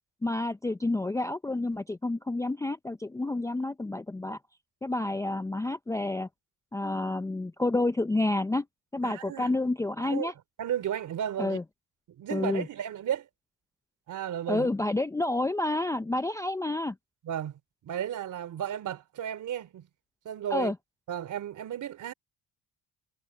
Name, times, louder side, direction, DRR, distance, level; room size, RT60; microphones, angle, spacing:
voice 1, 0.2-4.4 4.8-6.3 6.7-8.6 8.9-10.3 11.4-11.6 12.3-12.7 14.5-16.9 20.5-20.7, left 2 dB, 10° left, 0.5 m, -29 dB
voice 2, 9.0-9.5 10.0-10.3 10.6-11.6 12.2-13.3 14.1-14.7 17.2-19.9 20.2-20.7 21.1-22.1, right 10 dB, 60° right, 3.3 m, -34 dB
cardioid pair, 130°, 35 cm